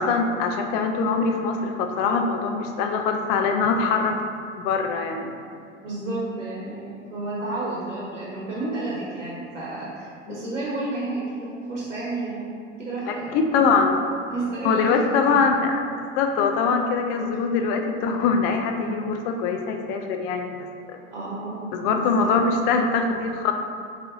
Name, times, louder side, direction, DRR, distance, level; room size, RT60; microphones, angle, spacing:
voice 1, 0.0-4.2 4.6-5.3 10.3-10.5 13.1-14.0 14.6-15.8 16.2-20.6 20.9-21.0 21.7-23.5, left 4 dB, 55° left, 4 dB, 0.5 m, -23 dB
voice 2, 5.8-13.4 14.3-15.4 21.1-22.3, right 2 dB, 85° right, -6 dB, 1.0 m, -31 dB
5.2 x 3.1 x 2.6 m, 2.3 s
hypercardioid pair, 75°, 36 cm